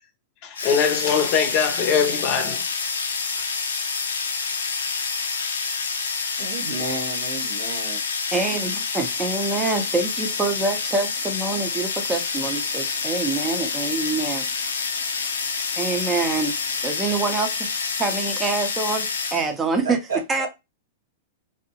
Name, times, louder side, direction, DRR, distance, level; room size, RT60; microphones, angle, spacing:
voice 1, 0.4-2.6, left 7 dB, 45° left, 0.6 m, -22 dB
sound 1, 0.6-19.5, left 5 dB, 85° left, 0.5 m, -27 dB
voice 2, 6.4-8.0 19.8-20.5, right 3 dB, 90° right, 1.4 m, -31 dB
voice 3, 8.3-14.5 15.7-16.6 16.8-17.7 18.0-20.0 20.3-20.5, right 3 dB, 15° right, 0.6 m, -25 dB
2.6 x 2.1 x 2.8 m
hypercardioid pair, 115°, 0 cm